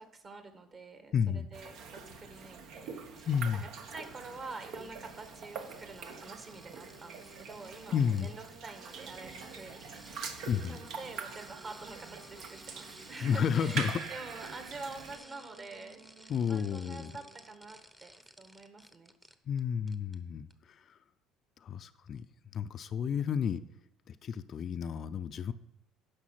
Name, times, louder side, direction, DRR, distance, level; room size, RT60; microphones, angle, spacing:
voice 1, 0.0-3.6 3.9-16.0 16.5-19.1, right 3 dB, 35° right, 7 dB, 1.7 m, -47 dB
voice 2, 1.1-1.5 3.3-3.6 7.9-8.3 10.5-10.8 13.2-14.0 16.3-17.1 19.5-21.0 21.6-22.3 22.5-23.6 24.1-25.5, left 7 dB, 50° left, 11 dB, 0.5 m, -31 dB
sound 1, 1.5-15.2, right 5 dB, 65° right, 1.2 m, -44 dB
sound 2, 3.1-19.6 19.9-20.2 20.5-20.6, equal, 10° right, 0.9 m, -56 dB
Wind instrument woodwind instrument, 6.7-17.6, right 3 dB, 85° right, 2.4 m, -58 dB
10.0 x 6.1 x 5.8 m, 0.85 s
hypercardioid pair, 70°, 0 cm